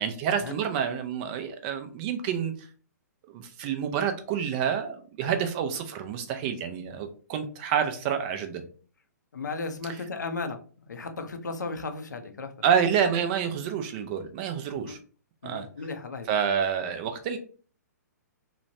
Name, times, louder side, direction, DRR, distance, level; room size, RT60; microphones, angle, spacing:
voice 1, 0.0-2.5 3.3-8.6 12.6-15.0 15.4-15.7 16.3-17.4, right 8 dB, 35° right, 7 dB, 0.4 m, -28 dB
voice 2, 9.3-10.6 10.9-12.5 14.8-15.0 15.4-16.4, left 3 dB, 80° left, 7 dB, 0.5 m, -35 dB
3.0 x 2.0 x 2.6 m, 0.40 s
figure-of-eight pair, 125°, 10 cm